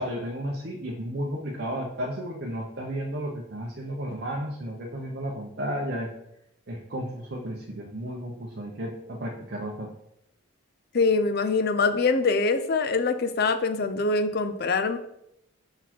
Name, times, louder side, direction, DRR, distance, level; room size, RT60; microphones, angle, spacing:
voice 1, 0.0-6.1 6.7-9.9, equal, 50° right, -1 dB, 0.7 m, -33 dB
voice 2, 10.9-15.0, left 3 dB, 45° left, 9 dB, 0.5 m, -24 dB
5.6 x 4.2 x 4.5 m, 0.78 s
head